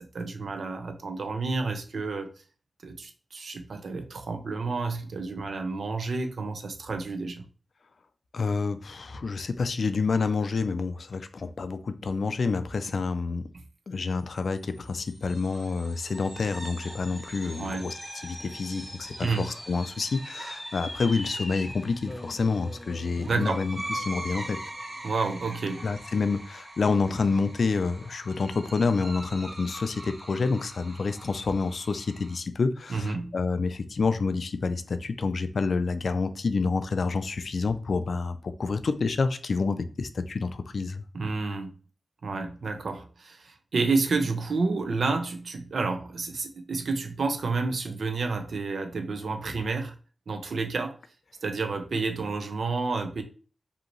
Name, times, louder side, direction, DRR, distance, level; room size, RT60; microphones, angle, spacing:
voice 1, 0.0-2.3 2.8-7.4 17.6-17.8 19.2-19.5 23.3-23.6 25.0-25.8 32.9-33.3 41.1-41.7 42.2-49.9 50.3-51.0 51.4-53.2, right 3 dB, 70° right, 0.6 m, -30 dB
voice 2, 8.3-13.4 13.9-24.6 25.8-41.0, left 4 dB, 65° left, 0.4 m, -28 dB
sound 1, 14.6-25.2, left 1 dB, 10° left, 0.7 m, -44 dB
sound 2, 15.1-32.4, right 1 dB, 45° right, 1.0 m, -43 dB
5.1 x 2.8 x 3.0 m
wide cardioid pair, 120°, 0 cm